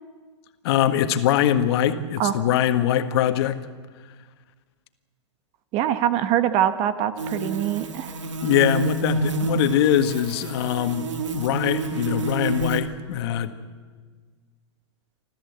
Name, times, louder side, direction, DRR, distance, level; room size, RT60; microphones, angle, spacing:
voice 1, 0.6-3.6 8.4-13.5, left 10 dB, 60° left, 8 dB, 1.6 m, -22 dB
voice 2, 5.7-8.1, right 11 dB, 40° right, 11 dB, 1.3 m, -23 dB
sound 1, 7.2-12.8, right 3 dB, 90° right, 2.3 m, -28 dB
27.5 x 14.0 x 8.2 m, 1.5 s
hypercardioid pair, 120°, 15 cm